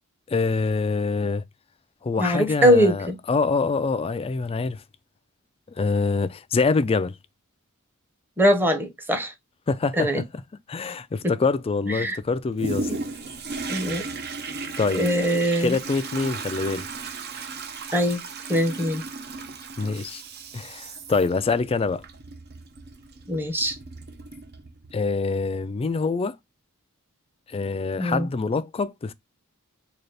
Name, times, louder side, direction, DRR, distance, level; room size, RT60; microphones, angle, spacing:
voice 1, 0.3-1.4 2.0-4.8 5.8-7.2 9.7-10.1 10.7-12.9 14.8-15.1 15.6-16.9 19.8-20.2 20.5-22.0 24.9-26.4 27.5-29.1, left 4 dB, 25° left, 0.3 m, -25 dB
voice 2, 2.2-3.2 8.4-9.3 10.0-10.2 11.9-12.2 12.9-13.0 13.7-14.0 14.9-15.8 17.9-18.2 18.5-19.0 23.3-23.8 28.0-28.3, equal, 10° right, 0.8 m, -22 dB
Toilet flush, 12.6-25.0 25.5-25.6, right 3 dB, 45° right, 0.6 m, -36 dB
4.0 x 2.4 x 3.2 m
head